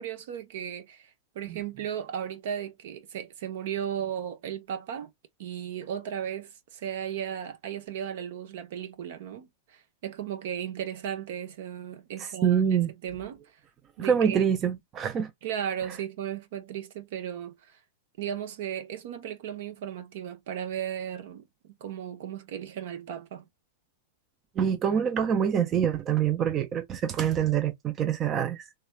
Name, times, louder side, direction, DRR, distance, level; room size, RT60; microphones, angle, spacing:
voice 1, 0.0-5.1 5.4-13.4 14.0-14.4 15.4-17.8 18.2-23.5, right 9 dB, 60° right, 0.8 m, -36 dB
voice 2, 12.4-12.9 14.0-15.3 24.6-28.6, right 8 dB, 30° right, 0.5 m, -25 dB
3.2 x 3.1 x 2.3 m
hypercardioid pair, 100°, 0 cm